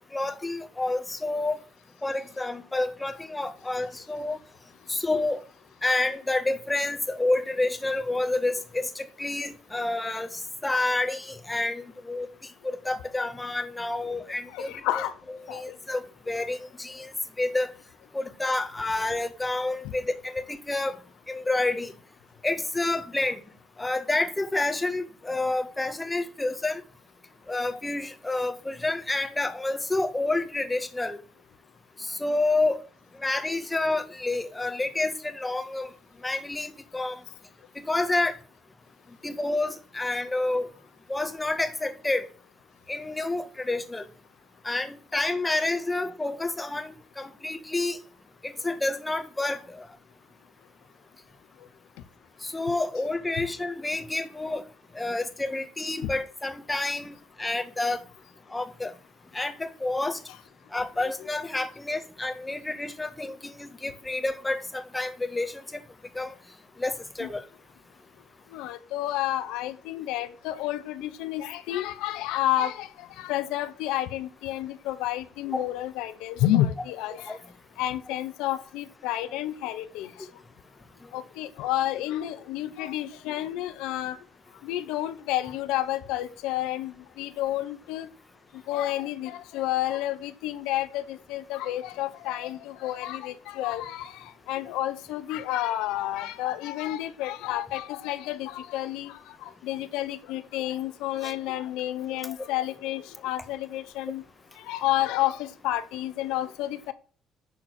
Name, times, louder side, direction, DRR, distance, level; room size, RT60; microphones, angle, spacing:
voice 1, 0.1-1.6 2.0-4.4 4.9-5.4 5.8-14.7 15.5-17.1 17.4-17.7 18.1-21.0 21.3-21.9 22.4-23.4 23.8-26.8 27.5-31.2 32.0-32.8 33.2-35.9 36.2-37.2 37.7-38.4 39.2-40.7 41.1-42.3 42.9-44.1 44.6-48.0 48.4-49.9 52.4-54.6 54.9-58.0 58.5-58.9 59.3-60.2 60.7-65.8 66.1-66.3 66.8-67.4 75.5-75.6 77.1-77.4 101.2-101.3, left 2 dB, 15° left, 1.6 m, -29 dB
voice 2, 14.5-15.1 15.5-15.7 53.4-53.5 56.0-56.1 67.2-67.3 68.5-77.4 77.8-80.3 81.1-84.2 84.6-88.1 88.7-104.2 104.7-106.9, left 14 dB, 80° left, 0.9 m, -30 dB
11.5 x 4.2 x 6.3 m
hypercardioid pair, 60°, 0 cm